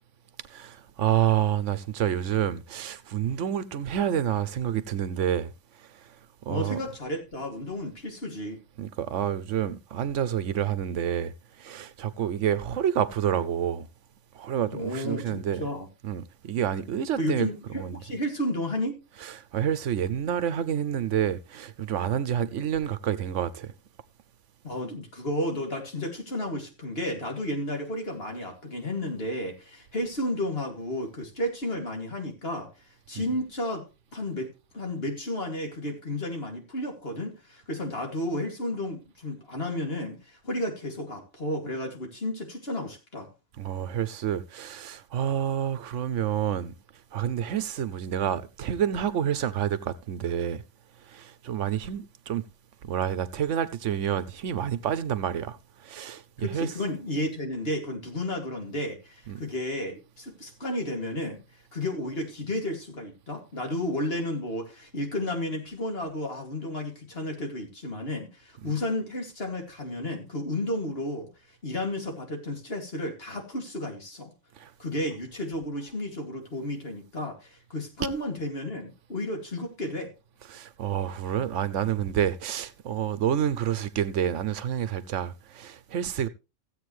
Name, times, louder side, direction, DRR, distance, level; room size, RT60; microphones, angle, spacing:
voice 1, 0.5-6.8 8.8-13.9 14.3-15.7 16.0-17.5 17.7-18.0 19.2-23.7 33.1-33.3 43.6-46.7 47.1-50.6 51.0-52.4 52.8-56.7 59.3-59.4 68.6-68.7 74.5-74.7 80.5-86.3, right 9 dB, 75° right, 1.1 m, -29 dB
voice 2, 6.5-8.6 14.7-15.9 17.2-19.0 24.6-32.7 33.1-33.9 34.1-43.3 56.4-61.4 61.7-71.3 71.6-74.3 74.8-80.1, left 1 dB, 55° left, 2.7 m, -32 dB
15.0 x 8.3 x 3.2 m
omnidirectional pair, 1.3 m